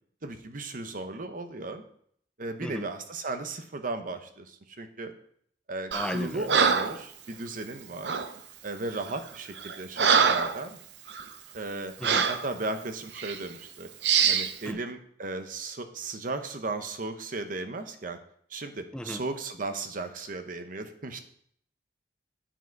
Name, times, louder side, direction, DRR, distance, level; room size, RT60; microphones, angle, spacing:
voice 1, 0.2-1.8 2.4-5.1 5.7-8.2 8.6-10.8 11.5-11.9 12.3-13.9 14.3-18.2 18.5-21.2, right 3 dB, 50° right, 7 dB, 0.9 m, -36 dB
voice 2, 5.9-6.6 12.0-12.2 14.6-14.8 18.9-19.2, left 1 dB, 5° left, 8 dB, 0.6 m, -35 dB
Breathing, 5.9-6.2 6.5-7.0 8.0-8.3 9.0-9.2 9.6-10.6 11.1-11.2 12.0-12.4 13.2-13.4 14.0-14.5, right 6 dB, 75° right, 0.7 m, -24 dB
8.9 x 7.4 x 4.7 m, 0.65 s
head